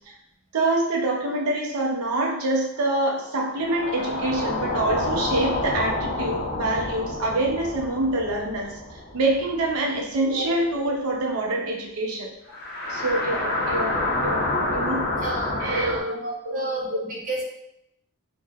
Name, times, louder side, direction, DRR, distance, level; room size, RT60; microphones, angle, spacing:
voice 1, 0.5-12.3 12.9-14.0 14.2-14.4 14.7-15.0 15.6-16.2 16.5-17.0, right 2 dB, 80° right, -1 dB, 0.5 m, -26 dB
sound 1, 3.5-10.1 10.4-10.5 12.5-16.0, left 2 dB, 45° left, 0.5 m, -28 dB
voice 2, 15.2-15.6 16.1-17.4, right 1 dB, 35° right, -3 dB, 0.6 m, -31 dB
3.2 x 2.1 x 2.3 m, 0.82 s
head